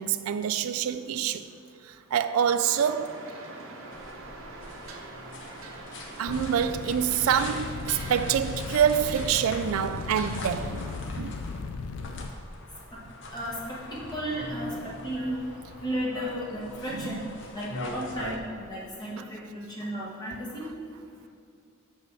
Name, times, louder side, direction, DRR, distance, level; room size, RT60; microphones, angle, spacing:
voice 1, 0.0-1.5 1.9-3.2 6.2-10.9 11.2-11.4 16.9-17.3 19.2-19.3, right 8 dB, 85° right, 0.3 m, -26 dB
sound 1, 2.6-11.0, right 2 dB, 70° right, 1.0 m, -43 dB
sound 2, 3.9-18.4, left 2 dB, 60° left, 0.8 m, -42 dB
sound 3, 6.3-12.3, left 4 dB, 80° left, 0.4 m, -37 dB
voice 2, 13.3-15.4 15.8-17.3 17.5-20.7, equal, 20° left, 1.6 m, -34 dB
6.2 x 5.6 x 6.1 m
head